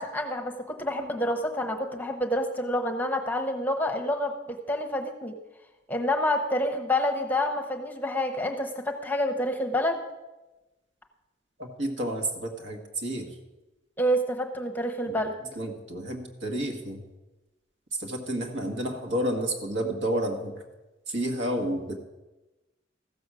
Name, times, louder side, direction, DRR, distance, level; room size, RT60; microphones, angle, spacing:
voice 1, 0.0-5.4 5.9-10.0 14.0-15.3, left 1 dB, 10° left, 4 dB, 0.9 m, -28 dB
voice 2, 11.6-13.3 15.1-15.2 15.6-17.0 18.0-20.5 21.1-22.0, right 1 dB, 70° right, 3 dB, 1.7 m, -30 dB
14.5 x 7.1 x 6.2 m, 1.1 s
head